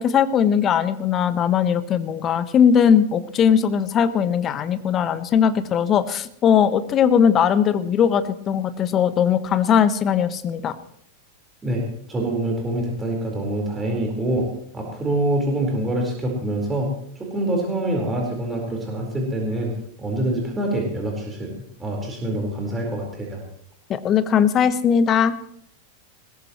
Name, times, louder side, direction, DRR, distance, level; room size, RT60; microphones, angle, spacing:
voice 1, 0.0-10.7 23.9-25.4, left 8 dB, 30° left, 12 dB, 1.3 m, -19 dB
voice 2, 12.1-14.5 14.7-16.9 17.2-19.7 20.0-21.5 21.8-23.4, right 1 dB, 15° right, -1 dB, 4.5 m, -25 dB
21.0 x 20.5 x 3.1 m, 0.68 s
figure-of-eight pair, 90°, 0 cm